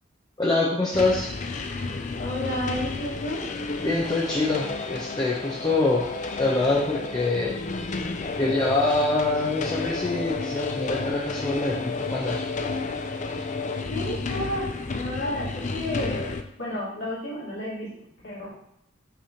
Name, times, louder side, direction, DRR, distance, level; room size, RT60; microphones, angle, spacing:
voice 1, 0.4-1.3 3.8-6.0 6.4-7.6 8.4-12.4, left 2 dB, 20° left, -5 dB, 1.0 m, -25 dB
sound 1, 0.9-16.4, left 3 dB, 40° left, 0.5 m, -31 dB
voice 2, 2.2-3.4 13.9-14.6 14.9-17.9 18.2-18.5, left 1 dB, 70° left, -7 dB, 2.7 m, -31 dB
5.8 x 3.5 x 5.8 m, 0.77 s
head